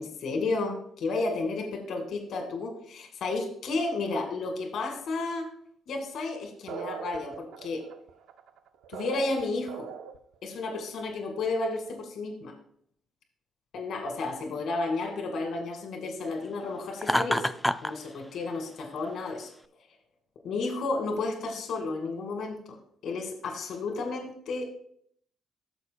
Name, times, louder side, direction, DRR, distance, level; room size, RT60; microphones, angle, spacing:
voice 1, 0.0-5.5 5.9-7.9 8.9-9.9 10.4-12.5 13.7-17.5 17.8-19.5 20.4-22.8 23.0-24.7, left 3 dB, 70° left, 3 dB, 2.0 m, -32 dB
sound 1, 6.7-10.4, right 7 dB, 85° right, 0.6 m, -40 dB
Laughter, 17.0-17.9, left 1 dB, 5° left, 0.3 m, -26 dB
15.0 x 6.7 x 2.2 m, 0.66 s
cardioid pair, 90°, 0 cm